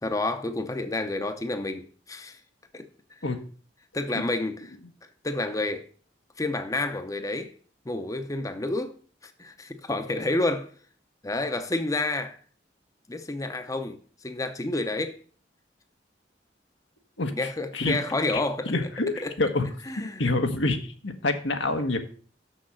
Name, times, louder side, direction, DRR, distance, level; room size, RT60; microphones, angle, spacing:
voice 1, 0.0-2.4 2.7-2.9 3.9-4.7 5.2-5.9 6.4-7.5 7.9-9.0 9.2-10.7 11.2-12.4 13.1-15.2 17.4-18.7 19.2-19.3 19.9-20.2, left 2 dB, 20° left, 0.6 m, -29 dB
voice 2, 17.2-18.0 18.7-19.7 20.0-22.0, left 2 dB, 90° left, 1.3 m, -27 dB
6.6 x 6.4 x 6.2 m
head